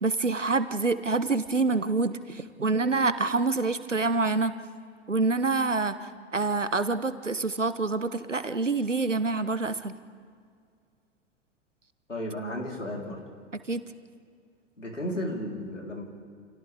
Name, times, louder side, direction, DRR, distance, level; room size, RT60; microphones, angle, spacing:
voice 1, 0.0-4.5 5.1-9.9 13.7-13.8, right 3 dB, 90° right, 11 dB, 1.2 m, -26 dB
voice 2, 12.1-13.2 14.8-16.0, left 1 dB, 85° left, -1 dB, 4.1 m, -33 dB
29.5 x 28.5 x 3.6 m, 2.2 s
figure-of-eight pair, 95°, 36 cm